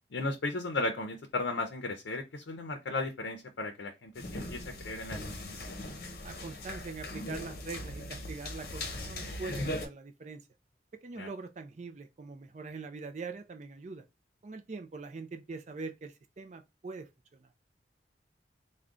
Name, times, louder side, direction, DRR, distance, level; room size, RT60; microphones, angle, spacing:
voice 1, 0.1-5.2 5.5-5.8 11.2-11.3, left 2 dB, 85° left, 0.6 m, -35 dB
sound 1, 4.2-9.9, left 1 dB, 55° left, 0.7 m, -39 dB
voice 2, 6.2-10.4 11.0-14.0 14.4-17.5, right 4 dB, 40° right, 0.4 m, -43 dB
3.6 x 2.2 x 3.6 m
head